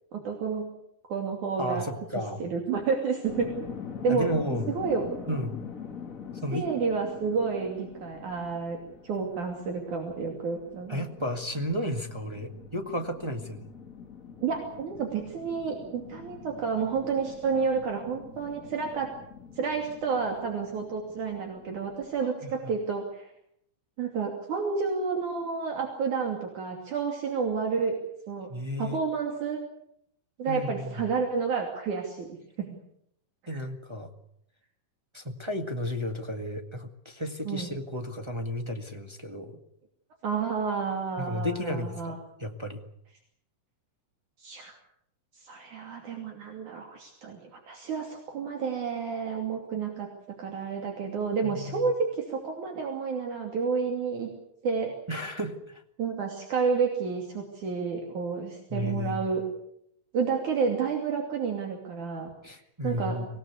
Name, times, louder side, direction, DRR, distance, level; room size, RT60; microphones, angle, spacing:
voice 1, 0.1-0.7 1.1-1.8 2.4-3.5 4.0-4.3 4.7-5.1 6.5-8.8 9.0-11.1 14.4-19.1 19.6-23.3 24.0-28.0 28.3-28.5 28.8-29.6 30.4-32.8 33.5-33.6 37.5-37.7 40.2-42.2 44.4-44.8 45.4-54.3 54.6-54.9 56.0-59.4 60.1-62.3 62.8-63.2, right 5 dB, 65° right, 1 dB, 4.1 m, -30 dB
voice 2, 1.6-2.4 4.1-4.7 5.3-5.6 6.4-6.7 10.9-13.7 22.4-22.7 28.5-29.0 30.5-31.1 33.5-34.1 35.1-39.6 41.2-42.8 51.4-51.9 55.1-55.8 58.7-59.2 62.4-63.3, left 1 dB, 15° right, 3 dB, 0.9 m, -33 dB
sound 1, 3.3-22.2, left 7 dB, 35° left, 1.4 m, -44 dB
25.0 x 18.5 x 8.3 m, 0.74 s
omnidirectional pair, 3.8 m